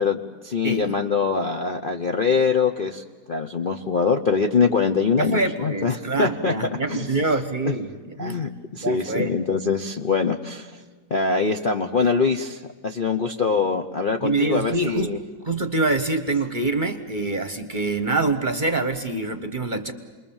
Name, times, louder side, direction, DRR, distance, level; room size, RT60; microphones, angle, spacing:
voice 1, 0.0-6.5 6.9-7.1 7.7-7.8 8.2-10.7 11.1-15.2, left 5 dB, 40° left, 4 dB, 0.8 m, -23 dB
voice 2, 5.2-7.9 8.2-8.4 8.8-9.3 14.2-15.1 15.4-19.9, right 3 dB, 30° right, 9 dB, 1.1 m, -25 dB
29.0 x 21.5 x 7.2 m, 1.5 s
omnidirectional pair, 1.9 m